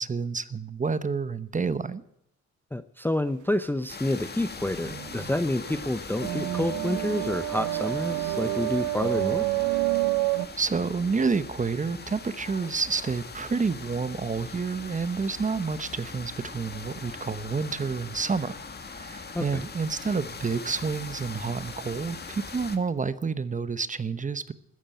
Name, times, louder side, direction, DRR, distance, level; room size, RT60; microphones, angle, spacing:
voice 1, 0.0-2.0 10.6-18.5 18.9-24.5, right 5 dB, 25° right, 14 dB, 1.0 m, -29 dB
voice 2, 2.7-9.5 19.3-19.6, left 1 dB, 5° left, 12 dB, 0.7 m, -28 dB
sound 1, 3.9-22.8, left 4 dB, 35° left, 2.0 m, -41 dB
sound 2, 4.6-10.5, right 18 dB, 75° right, 0.8 m, -28 dB
14.0 x 10.0 x 9.1 m, 0.77 s
cardioid pair, 90°, 30 cm